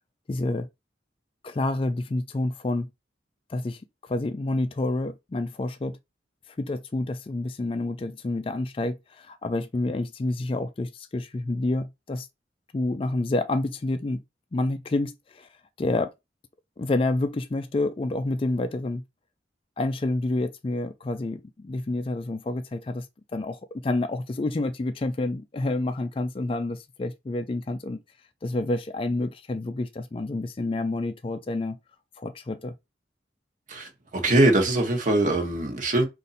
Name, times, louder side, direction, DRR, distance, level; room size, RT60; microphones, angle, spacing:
voice 1, 0.3-0.7 1.4-2.9 3.5-6.0 6.5-12.3 12.7-14.2 14.5-15.5 15.8-16.1 16.8-19.0 19.8-23.1 23.3-28.0 28.4-31.8 32.2-32.7, left 2 dB, 30° left, 0.3 m, -28 dB
voice 2, 33.7-36.1, right 2 dB, 45° right, 1.0 m, -22 dB
5.2 x 2.5 x 4.1 m
head